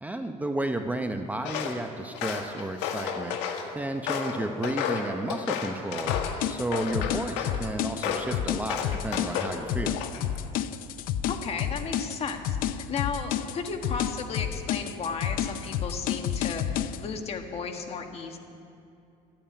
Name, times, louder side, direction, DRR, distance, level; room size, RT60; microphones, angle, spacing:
voice 1, 0.0-3.4 3.7-6.2 6.5-10.0, right 1 dB, 10° right, 6 dB, 0.7 m, -32 dB
Walk footsteps, 1.4-1.8 2.1-3.6 4.1-6.4 6.7-7.6 8.0-8.3 8.7-9.6 9.9-10.4, left 8 dB, 85° left, 1.7 m, -31 dB
sound 1, 6.1-17.0, left 10 dB, 55° left, 0.6 m, -30 dB
voice 2, 11.3-12.6 12.9-18.4, left 5 dB, 35° left, 4 dB, 1.6 m, -34 dB
13.5 x 9.0 x 9.8 m, 2.6 s
cardioid pair, 130°, 17 cm